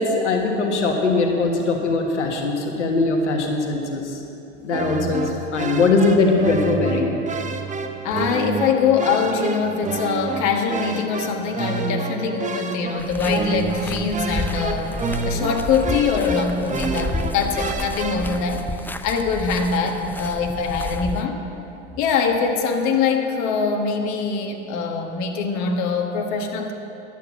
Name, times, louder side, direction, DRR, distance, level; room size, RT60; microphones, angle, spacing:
voice 1, 0.0-4.2 4.6-7.1, left 3 dB, 85° left, 2 dB, 1.6 m, -21 dB
sound 1, 4.7-18.4, right 4 dB, 20° right, 1.0 m, -29 dB
voice 2, 8.0-14.9 15.2-21.4 22.0-26.7, left 5 dB, 55° left, 2 dB, 1.5 m, -23 dB
Spazieren im Wald mit Kies, 13.0-21.2, left 2 dB, 5° left, 0.5 m, -31 dB
12.5 x 9.1 x 7.2 m, 2.7 s
hypercardioid pair, 85°, 34 cm